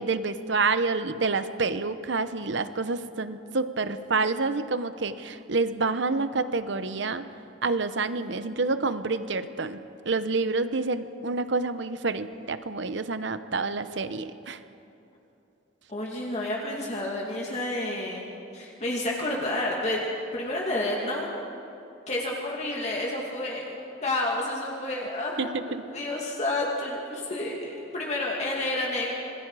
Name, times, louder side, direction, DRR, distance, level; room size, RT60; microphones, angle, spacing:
voice 1, 0.0-7.3 7.6-14.6 25.4-25.8, right 3 dB, 65° right, 12 dB, 0.8 m, -28 dB
voice 2, 15.9-18.3 18.5-20.0 20.3-21.3 22.1-29.1, left 1 dB, 35° left, -3 dB, 2.4 m, -30 dB
26.5 x 21.5 x 4.9 m, 2.8 s
head